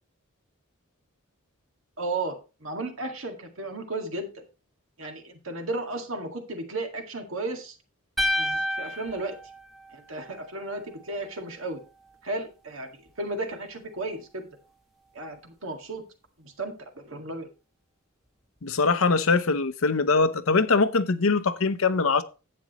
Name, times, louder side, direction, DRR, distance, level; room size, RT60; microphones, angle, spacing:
voice 1, 2.0-4.4 5.0-7.8 8.4-9.4 9.9-11.8 12.2-14.5 15.1-16.0 16.4-17.5, right 2 dB, 65° right, 1.9 m, -34 dB
sound 1, 8.2-10.4, left 1 dB, ahead, 1.2 m, -30 dB
voice 2, 18.6-22.2, left 4 dB, 80° left, 0.8 m, -22 dB
11.0 x 8.6 x 3.0 m
head